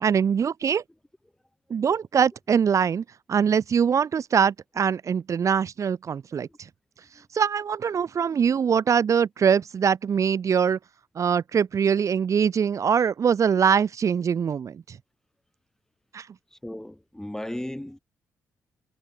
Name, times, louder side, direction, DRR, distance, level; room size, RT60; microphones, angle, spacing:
voice 1, 0.0-0.8 1.7-6.5 7.3-10.8 11.1-15.0 16.1-16.3, right 7 dB, 55° right, 1.2 m, -23 dB
voice 2, 16.6-18.0, left 1 dB, 10° left, 3.0 m, -35 dB
cardioid pair, 65°, 6 cm